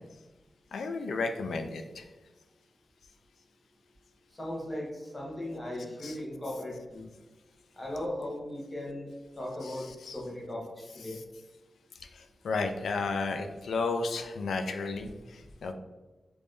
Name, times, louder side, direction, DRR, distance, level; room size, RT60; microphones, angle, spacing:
voice 1, 0.7-2.0 6.0-6.2 9.6-10.2 11.1-11.2 12.1-15.7, left 3 dB, 90° left, 6 dB, 0.3 m, -33 dB
voice 2, 4.4-7.1 7.8-9.9 10.1-11.2, left 1 dB, 20° left, -3 dB, 0.9 m, -37 dB
3.5 x 2.6 x 3.2 m, 1.2 s
wide cardioid pair, 155°, 0 cm